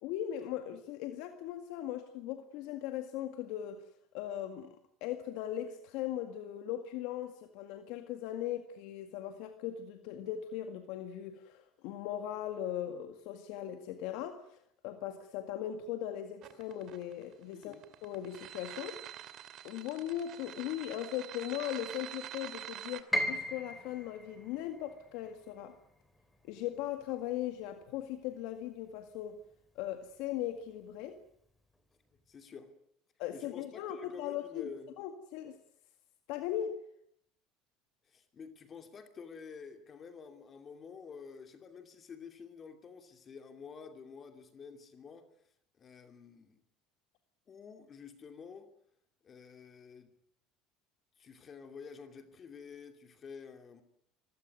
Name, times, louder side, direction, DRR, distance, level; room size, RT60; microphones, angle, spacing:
voice 1, 0.0-3.9 4.1-4.8 5.0-14.6 14.8-17.8 18.0-19.0 19.6-25.7 26.4-29.4 29.8-31.2 33.2-34.7 35.0-35.6 36.3-36.8, left 11 dB, 75° left, 1.9 m, -39 dB
sound 1, 16.4-23.0, right 12 dB, 55° right, 2.6 m, -46 dB
Piano, 23.1-29.1 29.4-30.5 30.9-31.0 31.8-32.1, equal, 5° left, 3.9 m, -40 dB
voice 2, 32.3-32.7 33.3-34.9 38.0-45.3 45.8-46.6 47.5-48.7 49.2-50.1 51.2-53.8, left 6 dB, 35° left, 2.7 m, -49 dB
24.5 x 16.5 x 9.5 m
supercardioid pair, 105°, 0 cm